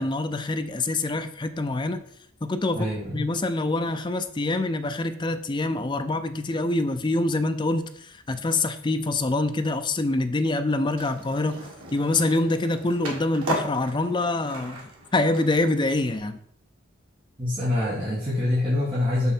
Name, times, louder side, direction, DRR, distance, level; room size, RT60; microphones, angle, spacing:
voice 1, 0.0-2.0 2.4-2.9 3.1-11.6 11.9-16.4, left 2 dB, 20° left, 8 dB, 0.4 m, -25 dB
voice 2, 2.7-3.2 17.4-19.3, left 1 dB, 25° right, -8 dB, 1.6 m, -25 dB
Skateboard, 10.9-16.2, right 2 dB, 85° right, 1.6 m, -37 dB
6.2 x 5.4 x 4.3 m, 0.68 s
head